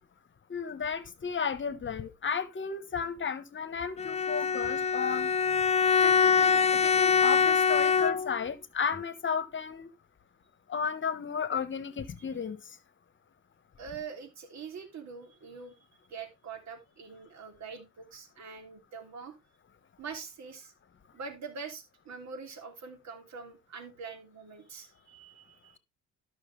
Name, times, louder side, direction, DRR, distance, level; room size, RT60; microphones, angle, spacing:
voice 1, 0.5-5.3 6.0-9.9 10.7-12.8, left 6 dB, 40° left, 1.2 m, -33 dB
Bowed string instrument, 4.0-8.5, left 6 dB, 20° left, 0.4 m, -24 dB
voice 2, 13.8-15.8 16.1-19.4 20.0-20.7 21.1-25.8, right 5 dB, 65° right, 3.0 m, -44 dB
13.0 x 6.2 x 3.2 m
cardioid pair, 90°, 30 cm